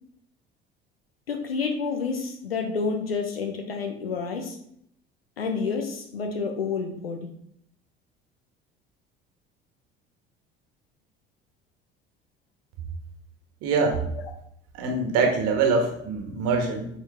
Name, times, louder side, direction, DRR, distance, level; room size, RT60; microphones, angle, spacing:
voice 1, 1.3-4.6 5.4-7.3, left 5 dB, 80° left, 4 dB, 1.0 m, -29 dB
voice 2, 13.6-14.0 14.7-16.9, right 4 dB, 55° right, 3 dB, 1.6 m, -24 dB
8.3 x 4.3 x 3.5 m, 0.71 s
figure-of-eight pair, 60°, 29 cm